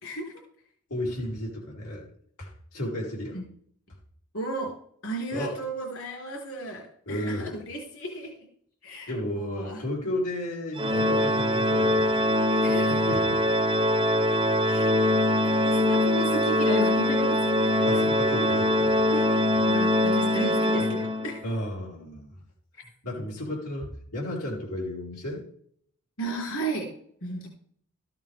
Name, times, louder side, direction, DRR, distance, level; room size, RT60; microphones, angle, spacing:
voice 1, 0.0-0.3 3.3-3.4 4.3-4.7 5.0-8.5 8.8-9.8 12.6-13.0 14.6-14.9 15.4-17.9 19.1-19.3 19.6-21.4 26.2-26.9 27.2-27.5, right 2 dB, 65° left, 0 dB, 3.8 m, -34 dB
voice 2, 0.9-2.1 2.4-3.4 5.3-5.6 7.1-7.5 9.1-12.2 12.5-13.4 17.8-18.9 21.4-22.4 23.0-25.4, left 1 dB, 90° left, -3 dB, 4.0 m, -33 dB
Organ, 10.8-21.5, left 1 dB, 25° right, 0.7 m, -23 dB
14.0 x 9.2 x 3.4 m, 0.63 s
head